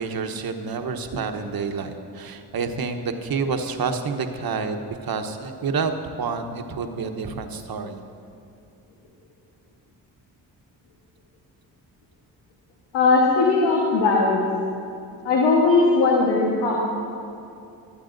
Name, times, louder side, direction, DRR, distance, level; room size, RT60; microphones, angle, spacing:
voice 1, 0.0-8.0, right 5 dB, 55° right, 6 dB, 1.1 m, -28 dB
voice 2, 12.9-14.4 15.2-16.9, left 3 dB, 80° left, -2 dB, 1.3 m, -19 dB
24.5 x 8.5 x 2.6 m, 2.6 s
supercardioid pair, 50°, 42 cm